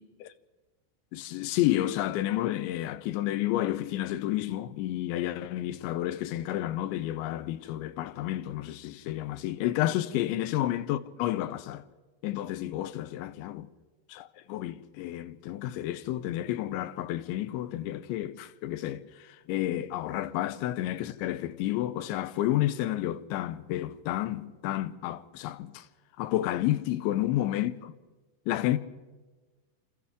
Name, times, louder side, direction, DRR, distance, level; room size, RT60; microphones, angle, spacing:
voice 1, 1.1-11.8 12.2-13.7 14.1-25.9 26.2-27.9 28.5-28.8, left 14 dB, 80° left, 3.1 m, -31 dB
28.0 x 27.5 x 3.6 m
omnidirectional pair, 5.3 m